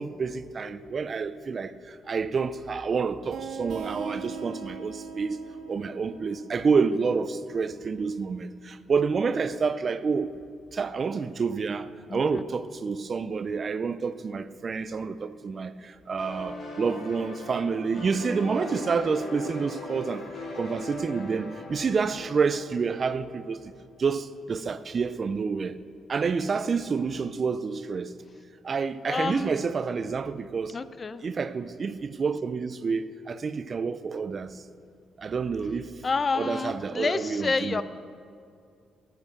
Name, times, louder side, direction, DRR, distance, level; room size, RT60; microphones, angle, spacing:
voice 1, 0.0-5.4 5.7-10.3 10.7-20.3 20.5-23.7 24.0-25.8 26.1-28.1 28.6-30.8 31.2-34.6 35.2-36.0 36.3-37.8, right 5 dB, 40° right, 0.5 m, -28 dB
sound 1, 3.3-8.7, right 5 dB, 65° right, 1.2 m, -41 dB
voice 2, 12.1-12.4 29.1-29.5 30.7-31.2 36.0-37.8, left 4 dB, 35° left, 0.5 m, -29 dB
sound 2, 16.2-23.7, left 2 dB, 55° left, 2.9 m, -40 dB
14.0 x 7.9 x 6.8 m
cardioid pair, 90°, 0 cm